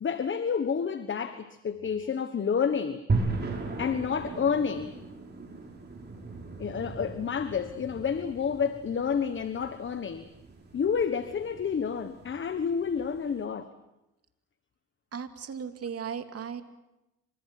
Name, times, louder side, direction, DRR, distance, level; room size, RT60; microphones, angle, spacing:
voice 1, 0.0-3.0 3.8-4.9 6.6-10.3 10.7-13.7, left 6 dB, 40° left, 1.3 m, -29 dB
sound 1, 3.1-13.3, right 3 dB, 35° right, 6.5 m, -37 dB
voice 2, 15.1-16.6, right 7 dB, 50° right, 2.6 m, -36 dB
30.0 x 26.0 x 6.1 m
cardioid pair, 90°, 30 cm